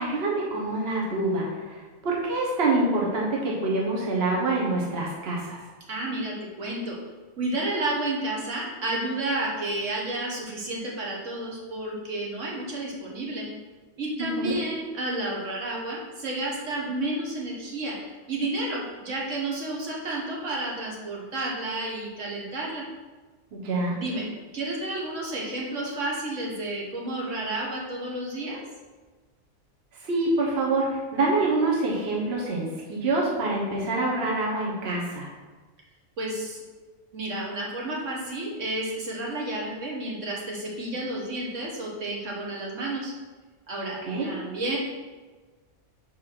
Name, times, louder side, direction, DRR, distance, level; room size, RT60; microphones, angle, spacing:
voice 1, 0.0-5.6 14.4-14.6 23.5-24.0 30.0-35.3 44.0-44.3, right 2 dB, 55° right, -3 dB, 1.3 m, -26 dB
voice 2, 5.9-7.0 7.4-13.5 14.0-22.9 23.9-28.6 36.2-36.6 37.1-43.1 43.7-44.8, right 2 dB, 70° right, -2 dB, 1.6 m, -31 dB
4.8 x 4.6 x 5.9 m, 1.3 s
omnidirectional pair, 1.3 m